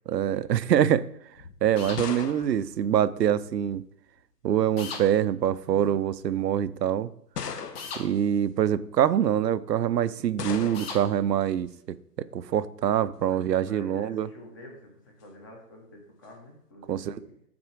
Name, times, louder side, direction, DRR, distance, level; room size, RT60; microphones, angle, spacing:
voice 1, 0.1-1.0 1.6-3.8 4.4-7.1 8.0-14.3 16.9-17.2, right 10 dB, 85° right, 16 dB, 0.6 m, -25 dB
sound 1, 1.4-3.7 4.7-5.2 6.0-6.1 7.3-8.2 10.4-11.1, left 6 dB, 75° left, 1.0 m, -38 dB
sound 2, 1.8-2.0 4.8-5.0 7.7-8.0 10.7-11.0, left 5 dB, 40° left, 1.3 m, -37 dB
voice 2, 13.3-17.3, left 1 dB, 15° left, 0 dB, 0.6 m, -48 dB
6.0 x 4.2 x 6.3 m, 0.70 s
hypercardioid pair, 155°, 48 cm